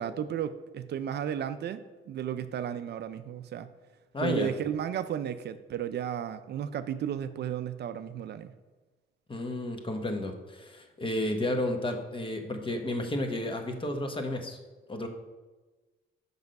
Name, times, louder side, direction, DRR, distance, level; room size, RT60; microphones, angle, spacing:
voice 1, 0.0-3.7 4.2-8.5, right 9 dB, 60° right, 11 dB, 0.4 m, -34 dB
voice 2, 4.1-4.5 9.3-14.6 14.9-15.1, left 1 dB, 25° left, 5 dB, 1.0 m, -32 dB
5.8 x 5.6 x 5.2 m, 1.3 s
cardioid pair, 90°, 20 cm